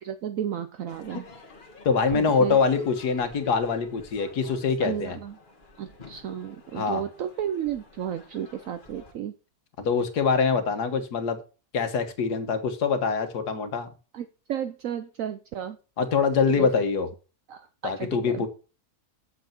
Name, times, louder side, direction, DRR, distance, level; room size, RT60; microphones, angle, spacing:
voice 1, 0.0-1.2 2.1-2.6 4.8-5.3 5.8-9.3 14.1-15.8 16.6-16.7 17.5-18.4, right 9 dB, 65° right, 9 dB, 1.0 m, -33 dB
Crowd / Fireworks, 0.9-9.1, left 4 dB, 35° left, 1.8 m, -48 dB
voice 2, 1.9-5.2 6.7-7.0 9.8-11.4 11.7-13.9 16.0-17.1 17.8-18.5, left 5 dB, 85° left, 8 dB, 1.8 m, -24 dB
8.0 x 7.2 x 4.4 m, 0.33 s
omnidirectional pair, 1.7 m